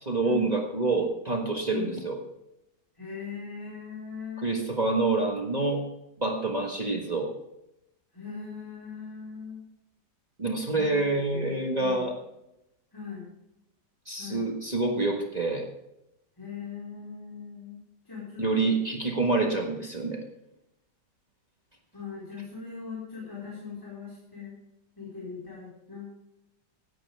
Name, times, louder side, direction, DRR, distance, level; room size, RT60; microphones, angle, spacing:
voice 1, 0.0-2.2 4.4-5.8 6.2-7.3 10.4-12.2 14.1-15.7 18.4-20.2, right 3 dB, 25° right, 1 dB, 1.6 m, -27 dB
voice 2, 3.0-4.6 8.1-9.6 10.7-12.1 12.9-13.3 14.2-14.5 16.4-18.8 21.9-24.5 25.0-26.1, left 5 dB, 10° left, -7 dB, 4.8 m, -40 dB
17.0 x 10.5 x 3.5 m, 0.86 s
omnidirectional pair, 1.8 m